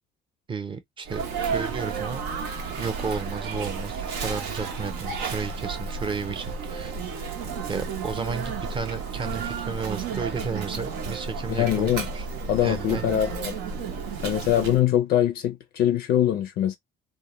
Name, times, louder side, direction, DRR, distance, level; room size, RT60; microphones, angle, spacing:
voice 1, 0.5-2.2 2.7-7.0 7.7-12.2 12.6-13.2, right 5 dB, 30° right, 0.7 m, -33 dB
Sneeze, 1.1-14.8, right 5 dB, 90° right, 0.7 m, -32 dB
voice 2, 11.5-12.1 12.5-13.5 14.2-16.8, left 11 dB, 70° left, 0.4 m, -23 dB
2.2 x 2.1 x 2.9 m
cardioid pair, 110°, 17 cm